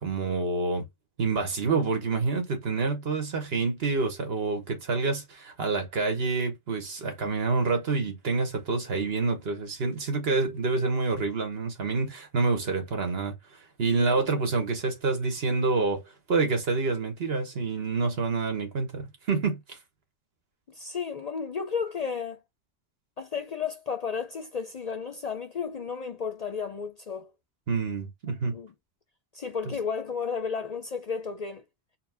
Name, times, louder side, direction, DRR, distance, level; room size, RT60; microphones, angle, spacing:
voice 1, 0.0-0.9 1.2-13.3 13.8-16.0 16.3-19.8 27.7-28.6, right 3 dB, 65° right, 1.4 m, -27 dB
voice 2, 20.7-22.4 23.2-27.3 28.5-28.7 29.3-31.6, left 6 dB, 50° left, 0.5 m, -33 dB
4.3 x 2.0 x 4.2 m
omnidirectional pair, 1.1 m